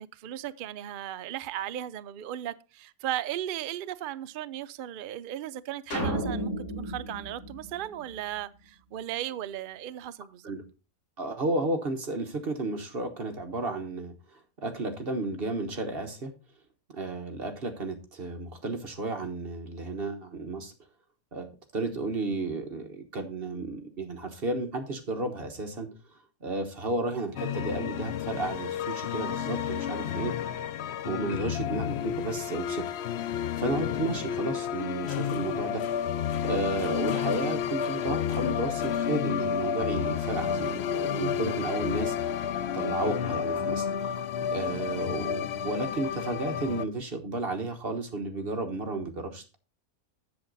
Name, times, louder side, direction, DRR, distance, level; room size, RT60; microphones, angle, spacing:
voice 1, 0.0-10.5, right 12 dB, 80° right, 0.4 m, -36 dB
sound 1, 5.9-8.4, equal, 80° left, 2.6 m, -33 dB
voice 2, 11.2-16.3 16.9-20.7 21.3-25.9 26.4-30.3 31.0-32.8 33.6-35.8 36.4-42.1 42.7-43.9 44.5-49.6, right 2 dB, 45° right, 1.3 m, -33 dB
sound 2, 27.4-46.9, left 8 dB, 60° left, 0.7 m, -31 dB
7.8 x 7.5 x 4.0 m
omnidirectional pair, 1.5 m